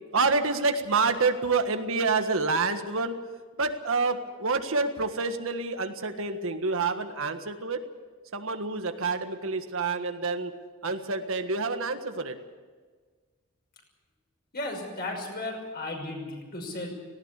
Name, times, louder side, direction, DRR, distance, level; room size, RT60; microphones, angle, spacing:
voice 1, 0.1-3.1 3.6-7.8 8.3-10.5 10.8-12.4, right 4 dB, 65° right, 7 dB, 1.6 m, -27 dB
voice 2, 14.5-16.9, left 2 dB, 45° left, 1 dB, 5.9 m, -35 dB
18.5 x 17.5 x 8.4 m, 1.4 s
head